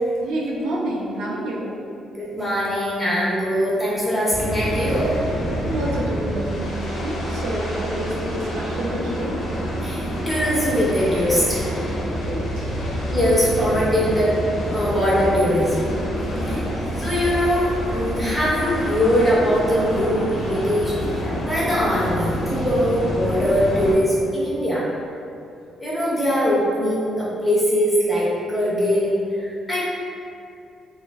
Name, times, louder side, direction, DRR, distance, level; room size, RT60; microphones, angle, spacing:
voice 1, 0.2-1.8 5.6-9.4 12.0-12.7 16.3-16.7, right 1 dB, 80° right, -3 dB, 0.4 m, -29 dB
voice 2, 2.2-5.1 9.8-11.7 12.8-14.3 14.7-15.9 16.5-16.6 17.0-20.9 21.2-24.8 25.8-29.8, equal, 10° left, -8 dB, 0.8 m, -21 dB
sound 1, 4.3-23.9, equal, 80° left, 0.7 m, -27 dB
3.1 x 2.0 x 2.2 m, 2.5 s
cardioid pair, 90°, 0 cm